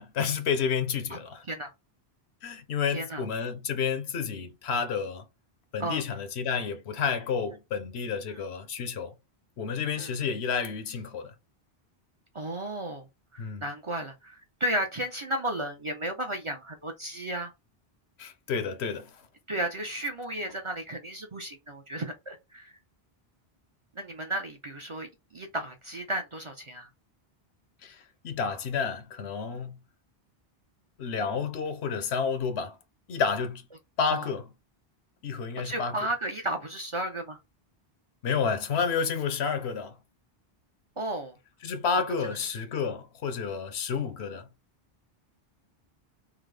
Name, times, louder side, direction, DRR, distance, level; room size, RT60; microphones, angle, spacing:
voice 1, 0.0-1.4 2.4-5.3 5.7-9.1 9.6-11.3 13.4-13.6 18.2-19.2 27.8-29.8 31.0-32.8 33.1-33.6 34.0-34.4 35.2-36.0 38.2-40.0 41.6-44.5, left 6 dB, 90° left, 1.0 m, -30 dB
voice 2, 2.9-3.2 5.8-6.0 8.3-8.4 10.0-10.1 12.3-17.5 19.5-22.7 23.9-26.9 34.1-34.3 35.6-37.4 41.0-41.3 42.2-42.5, right 1 dB, 40° right, 0.5 m, -34 dB
3.5 x 2.0 x 3.2 m
omnidirectional pair, 1.0 m